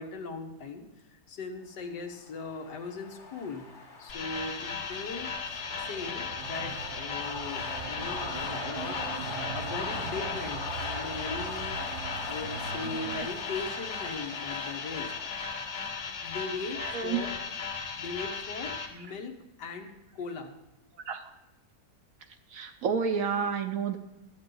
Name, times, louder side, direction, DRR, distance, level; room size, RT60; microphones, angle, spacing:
voice 1, 0.0-3.7 4.0-5.3 5.8-15.1 16.2-17.3 17.9-20.5, left 4 dB, 80° left, 4 dB, 1.7 m, -39 dB
sound 1, 2.0-18.7, left 3 dB, 45° left, 1.7 m, -42 dB
sound 2, 4.1-18.9, left 5 dB, 65° left, 1.6 m, -37 dB
sound 3, 4.9-13.3, right 7 dB, 80° right, 1.4 m, -42 dB
voice 2, 16.8-17.2 21.1-21.3 22.5-24.0, right 6 dB, 65° right, 7 dB, 0.9 m, -30 dB
12.5 x 8.1 x 3.8 m, 0.94 s
omnidirectional pair, 1.8 m